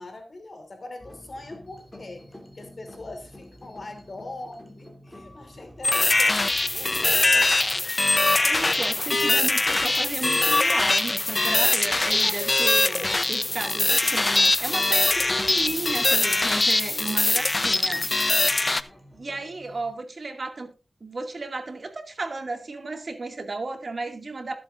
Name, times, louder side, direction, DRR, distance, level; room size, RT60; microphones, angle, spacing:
voice 1, 0.0-2.3 2.5-7.9 11.9-13.2 15.1-15.4 16.9-17.4, left 2 dB, 60° left, 3.2 m, -41 dB
sound 1, 1.0-19.9, equal, 20° left, 3.1 m, -49 dB
sound 2, 5.8-18.8, left 2 dB, 40° left, 0.8 m, -22 dB
voice 2, 8.4-18.8 19.1-20.7 21.0-24.6, right 3 dB, 60° right, 2.3 m, -34 dB
20.5 x 7.7 x 2.6 m
cardioid pair, 45°, 0 cm